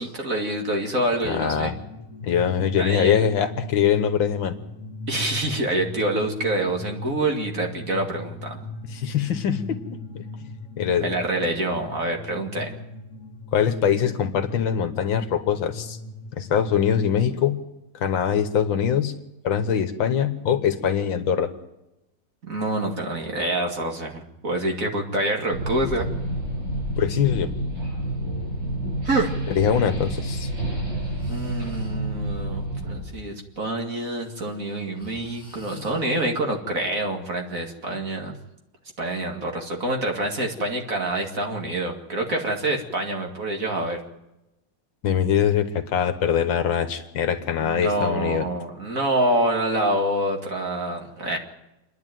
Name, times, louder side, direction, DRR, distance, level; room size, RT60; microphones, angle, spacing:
voice 1, 0.0-1.7 2.8-3.2 5.1-8.6 11.0-12.7 22.4-26.1 29.0-29.4 31.3-38.3 39.0-44.0 47.6-51.4, right 1 dB, 40° right, 2 dB, 2.6 m, -26 dB
voice 2, 1.2-1.7 2.2-4.6 8.9-10.3 10.8-11.1 13.5-16.0 16.3-17.6 17.9-19.1 19.4-21.5 27.0-27.5 29.5-30.5 45.0-48.5, left 8 dB, 70° left, 10 dB, 1.9 m, -23 dB
sound 1, 1.5-16.8, left 3 dB, 45° left, 1.6 m, -39 dB
sound 2, 25.5-33.0, right 1 dB, 55° right, 8.6 m, -29 dB
Breathing, 29.6-29.8 31.0-32.2 33.9-36.6, left 2 dB, 10° left, 4.7 m, -48 dB
27.5 x 10.5 x 9.2 m, 0.93 s
omnidirectional pair, 2.2 m